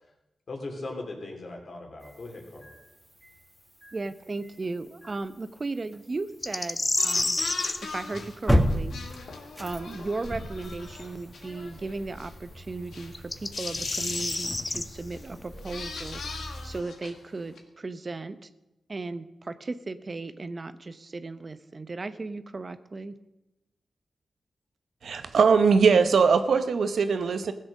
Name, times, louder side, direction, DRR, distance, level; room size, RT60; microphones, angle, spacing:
voice 1, 0.5-2.7, left 2 dB, 65° left, 3.2 m, -39 dB
sound 1, 2.0-16.8, equal, ahead, 1.8 m, -35 dB
voice 2, 3.9-7.4 7.8-9.0 9.6-18.5 18.9-23.1, right 3 dB, 45° right, 0.8 m, -36 dB
sound 2, 6.4-7.8 10.9-11.0 13.1-14.9, left 2 dB, 30° left, 0.7 m, -28 dB
sound 3, 7.0-12.3 12.7-13.1 13.5-14.6 15.1-15.3 15.5-17.3 17.5-17.6, left 4 dB, 80° left, 1.5 m, -40 dB
voice 3, 25.0-27.5, right 5 dB, 75° right, 0.9 m, -21 dB
15.5 x 7.7 x 6.3 m
cardioid pair, 45°, 0 cm